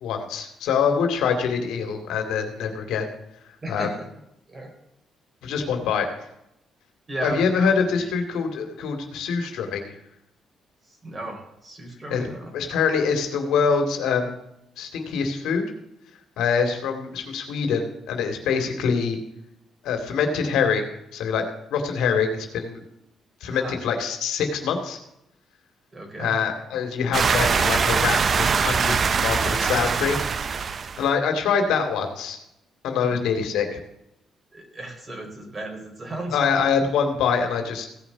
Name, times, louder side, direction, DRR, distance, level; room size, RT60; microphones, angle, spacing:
voice 1, 0.0-3.1 3.7-3.9 5.4-6.1 7.2-9.9 12.1-12.3 12.5-14.3 14.8-15.6 16.4-19.2 19.8-21.4 21.7-22.8 23.4-25.0 26.2-30.7 31.0-32.4 32.8-33.8 36.3-37.9, left 6 dB, 85° left, 5 dB, 2.4 m, -24 dB
voice 2, 3.6-4.1 4.5-4.7 7.1-8.1 10.8-12.5 18.5-18.7 23.4-23.9 25.9-26.4 33.0-33.2 34.5-36.4, right 1 dB, 25° right, 2 dB, 4.5 m, -35 dB
sound 1, 27.1-31.0, right 5 dB, 45° right, 0.5 m, -22 dB
16.5 x 5.7 x 6.9 m, 0.83 s
cardioid pair, 90°, 0 cm